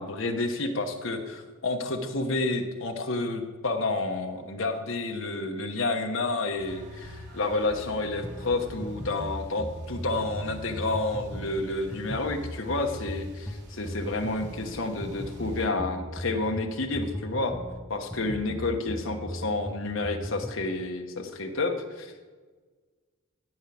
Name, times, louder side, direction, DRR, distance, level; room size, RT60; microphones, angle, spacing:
voice 1, 0.0-17.6 17.9-22.3, left 2 dB, 60° left, 4 dB, 1.2 m, -30 dB
sound 1, 6.6-15.7, left 1 dB, 55° right, 3.0 m, -46 dB
sound 2, 8.2-20.7, equal, 5° left, 0.6 m, -38 dB
14.0 x 5.5 x 8.6 m, 1.4 s
head